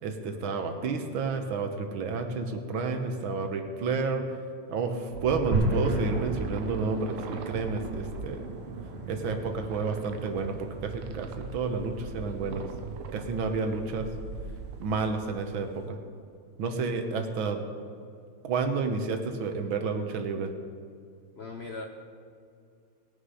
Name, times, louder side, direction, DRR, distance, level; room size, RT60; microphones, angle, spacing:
voice 1, 0.0-4.4 4.7-8.5 9.1-12.6 13.1-14.1 14.8-16.0 16.6-17.7 18.4-20.5, right 4 dB, 70° right, 6 dB, 1.7 m, -30 dB
sound 1, 5.1-15.1, right 4 dB, 85° right, 1.8 m, -41 dB
sound 2, 5.5-15.8, right 2 dB, 35° right, 3.1 m, -35 dB
voice 2, 21.3-21.9, left 3 dB, 65° left, 2 dB, 0.6 m, -39 dB
19.5 x 6.7 x 5.5 m, 2.4 s
omnidirectional pair, 2.4 m